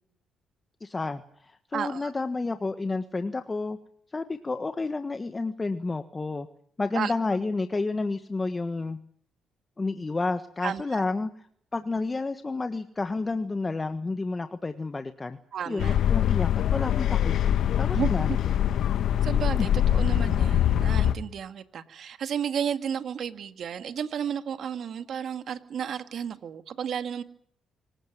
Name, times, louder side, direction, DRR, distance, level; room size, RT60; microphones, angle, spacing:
voice 1, 0.8-3.8 4.1-6.5 6.8-9.0 9.8-11.3 11.7-15.4 15.7-17.4 17.8-18.3 19.6-19.7, left 3 dB, 25° left, 8 dB, 1.4 m, -30 dB
voice 2, 1.7-2.1 6.9-7.1 10.6-11.0 15.5-16.0 17.9-18.1 19.2-27.2, right 8 dB, 65° right, 9 dB, 2.0 m, -32 dB
sound 1, 15.8-21.1, left 10 dB, 70° left, 1.4 m, -23 dB
25.0 x 16.0 x 9.4 m, 0.65 s
cardioid pair, 90°, 0 cm